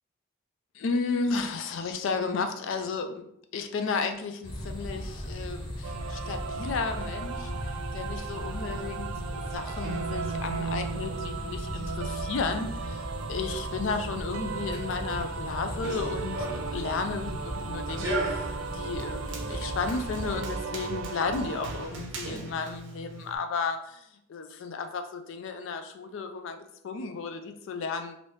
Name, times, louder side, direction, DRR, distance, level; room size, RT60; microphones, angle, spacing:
voice 1, 0.7-3.3 3.5-7.5 7.9-13.0 13.3-18.5 18.7-28.2, left 4 dB, 60° left, 7 dB, 0.3 m, -33 dB
sound 1, 4.4-20.4, equal, 20° left, 0.6 m, -37 dB
sound 2, 5.8-21.9, right 6 dB, 90° right, 0.3 m, -37 dB
Run, 15.6-23.4, right 1 dB, 60° right, 0.6 m, -38 dB
3.0 x 2.6 x 3.1 m, 0.73 s
head